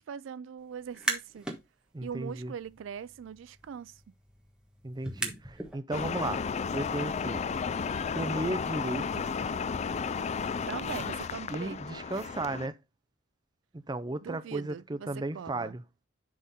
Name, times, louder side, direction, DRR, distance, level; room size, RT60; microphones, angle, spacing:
voice 1, 0.0-1.5 2.0-4.0 10.7-12.4 14.2-15.8, right 7 dB, 70° right, 0.3 m, -41 dB
sound 1, 0.8-1.6 2.0-5.8, right 2 dB, 5° right, 1.3 m, -38 dB
voice 2, 1.9-2.5 4.8-6.4 6.7-7.4 8.1-9.3 11.5-12.8 13.7-15.8, right 2 dB, 20° right, 0.5 m, -35 dB
sound 2, 5.9-12.7, left 5 dB, 35° left, 0.4 m, -33 dB
10.5 x 3.7 x 4.2 m
head